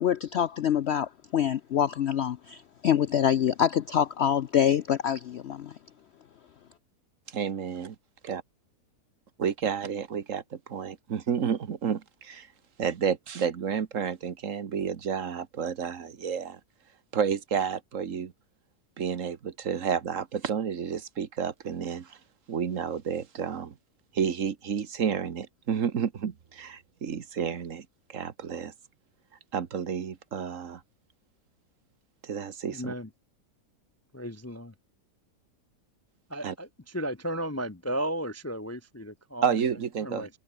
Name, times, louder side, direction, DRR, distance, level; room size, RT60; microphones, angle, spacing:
voice 1, 0.0-5.7, left 9 dB, 65° left, 0.7 m, -26 dB
voice 2, 7.3-7.9 8.2-8.4 9.4-12.5 12.8-16.6 17.1-18.3 19.0-22.2 22.5-23.7 24.1-28.7 29.5-30.8 32.2-32.9 36.4-36.5 39.4-40.3, right 7 dB, 55° right, 1.5 m, -30 dB
voice 3, 32.7-33.1 34.1-34.7 36.3-36.7 36.9-39.5 40.0-40.3, equal, 15° left, 0.6 m, -34 dB
omnidirectional pair, 1.7 m